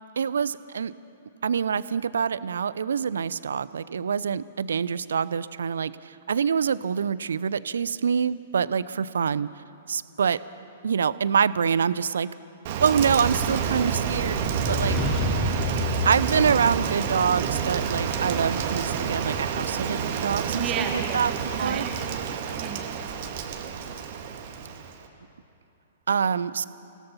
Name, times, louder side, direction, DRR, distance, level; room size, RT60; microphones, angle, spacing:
voice 1, 0.2-0.9 1.4-5.9 6.3-9.5 9.9-10.4 10.8-12.3 12.8-15.0 16.1-20.7 20.9-21.3 21.6-21.8 26.1-26.6, right 6 dB, 65° right, 18 dB, 0.6 m, -25 dB
Rain, 12.6-25.1, right 7 dB, 50° right, 2.0 m, -29 dB
sound 1, 14.4-17.4, left 3 dB, 35° left, 5.1 m, -29 dB
voice 2, 20.6-23.1, right 6 dB, 30° right, 4 dB, 1.9 m, -34 dB
28.5 x 17.5 x 5.6 m, 2.7 s
figure-of-eight pair, 110°, 0 cm